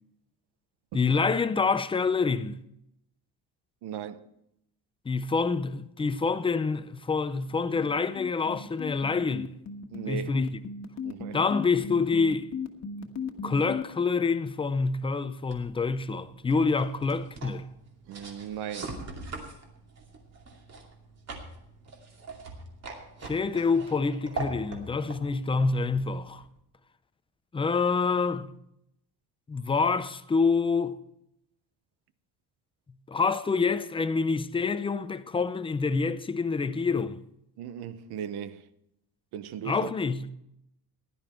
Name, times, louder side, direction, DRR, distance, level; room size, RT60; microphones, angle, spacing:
voice 1, 0.9-2.6 5.1-9.5 10.1-10.6 11.3-12.5 13.4-17.7 23.2-26.4 27.5-28.5 29.5-31.0 33.1-37.2 39.6-40.3, left 4 dB, 15° left, 0.5 m, -27 dB
voice 2, 3.8-4.3 9.9-10.3 11.0-11.4 18.1-19.0 37.6-38.7 39.3-39.9, right 8 dB, 75° right, 1.0 m, -37 dB
sound 1, 8.2-13.8, left 5 dB, 40° left, 1.5 m, -36 dB
sound 2, 15.5-26.6, right 3 dB, 40° right, 2.6 m, -42 dB
15.5 x 11.0 x 4.4 m
cardioid pair, 160°, 40 cm